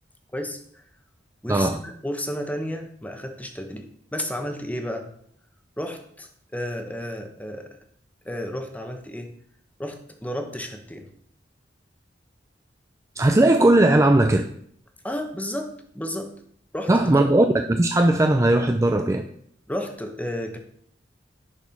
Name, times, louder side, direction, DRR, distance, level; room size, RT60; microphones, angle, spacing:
voice 1, 0.3-0.8 1.4-5.1 5.8-7.7 8.2-9.3 9.8-11.1 15.0-16.3 16.7-17.2 19.7-20.6, equal, 10° left, 5 dB, 1.1 m, -32 dB
voice 2, 13.2-14.4 16.9-19.2, right 1 dB, 15° right, 5 dB, 0.4 m, -18 dB
10.5 x 4.7 x 5.8 m, 0.64 s
head